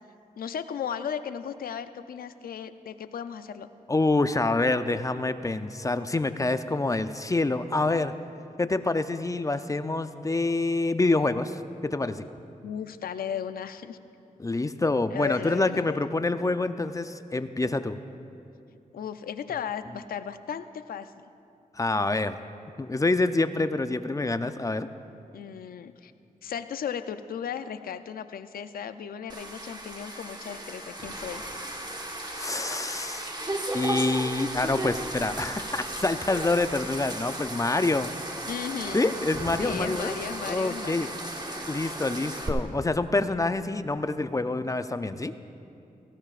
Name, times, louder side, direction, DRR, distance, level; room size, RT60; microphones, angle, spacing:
voice 1, 0.4-3.7 12.6-14.0 15.1-16.0 18.9-21.1 25.3-26.1 26.4-31.4 38.5-39.2 39.6-41.1, left 8 dB, 85° left, 11 dB, 0.5 m, -35 dB
voice 2, 3.9-8.1 8.6-12.2 14.4-18.0 21.8-22.4 22.8-24.9 32.4-33.3 33.7-38.1 38.9-40.1 40.4-41.4 41.7-45.3, left 2 dB, 20° left, 11 dB, 0.5 m, -27 dB
sound 1, 29.3-42.5, right 1 dB, 30° right, 1.4 m, -35 dB
17.5 x 15.5 x 2.5 m, 2.6 s
cardioid pair, 60°, 15 cm